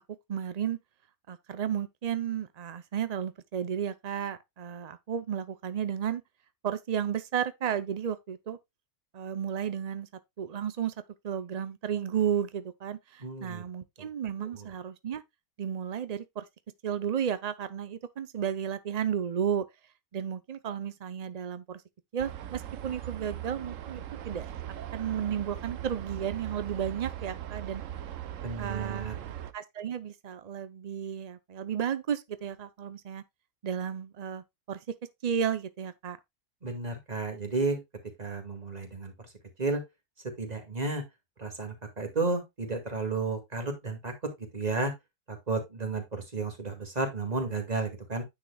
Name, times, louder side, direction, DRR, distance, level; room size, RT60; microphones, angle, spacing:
voice 1, 0.3-0.8 1.3-6.2 6.6-8.6 9.1-10.1 10.4-10.9 11.2-15.2 15.6-16.5 16.8-19.7 20.1-21.8 22.1-24.5 24.9-27.8 28.6-29.1 29.5-33.2 33.6-34.8 35.2-36.2, right 8 dB, 80° right, 0.3 m, -33 dB
voice 2, 13.2-13.6 14.0-14.1 14.4-14.7 28.4-29.3 36.6-37.8 38.2-39.1 39.6-39.8 40.4-41.0 41.4-44.1 44.5-44.9 45.3-48.2, right 3 dB, 25° right, 2.1 m, -32 dB
sound 1, 22.2-29.5, right 11 dB, 65° right, 1.0 m, -39 dB
9.6 x 6.5 x 2.2 m
omnidirectional pair, 1.6 m